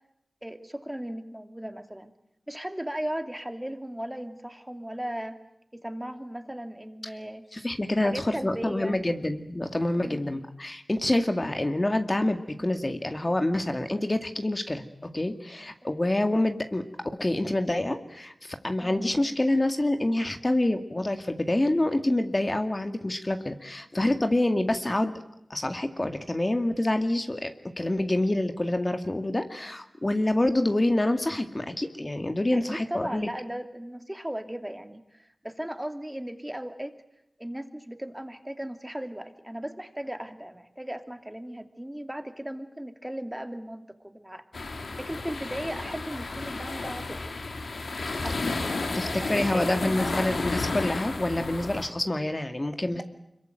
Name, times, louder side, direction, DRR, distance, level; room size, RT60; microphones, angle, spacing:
voice 1, 0.4-2.1 2.5-5.4 5.7-7.4 8.0-9.0 10.0-10.2 18.8-19.0 32.5-36.9 37.4-44.4 45.0-47.2 48.2-48.4 48.8-50.3 52.9-53.0, right 1 dB, 10° right, 7 dB, 2.8 m, -37 dB
voice 2, 7.5-16.8 17.1-25.1 25.5-33.3 48.9-53.0, left 1 dB, 30° left, 7 dB, 2.2 m, -27 dB
sound 1, 44.5-51.9, left 3 dB, 85° left, 3.0 m, -32 dB
25.5 x 22.5 x 9.3 m, 0.80 s
cardioid pair, 45°, 0 cm